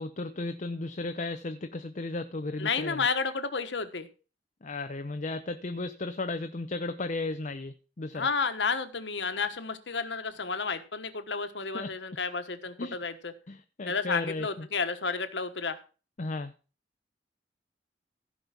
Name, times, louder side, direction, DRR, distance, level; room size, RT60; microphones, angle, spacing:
voice 1, 0.0-3.1 4.6-8.3 11.7-11.9 12.8-13.0 13.5-14.7 16.2-16.5, left 2 dB, 45° left, 8 dB, 0.7 m, -35 dB
voice 2, 2.6-4.1 8.1-13.3 13.9-15.8, left 5 dB, 90° left, 9 dB, 1.3 m, -31 dB
16.0 x 5.4 x 5.9 m, 0.35 s
head